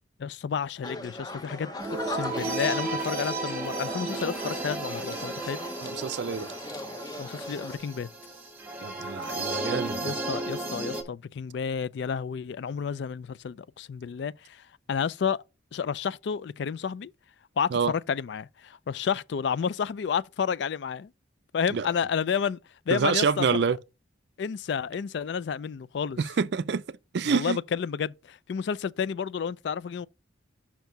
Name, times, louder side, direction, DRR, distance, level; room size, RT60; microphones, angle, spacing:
voice 1, 0.2-1.7 2.0-5.6 7.2-8.1 10.0-15.4 15.7-17.1 17.6-21.1 21.5-22.6 22.9-23.5 24.4-26.2 27.2-30.1, left 6 dB, 60° left, 0.3 m, -31 dB
sound 1, 0.8-7.8, left 2 dB, 20° left, 0.7 m, -40 dB
sound 2, 1.8-11.0, right 2 dB, 10° right, 1.4 m, -34 dB
voice 2, 5.8-6.5 8.8-10.2 17.7-17.9 21.7-21.9 22.9-23.8 26.2-27.6, right 5 dB, 60° right, 0.4 m, -27 dB
5.8 x 4.5 x 5.1 m
head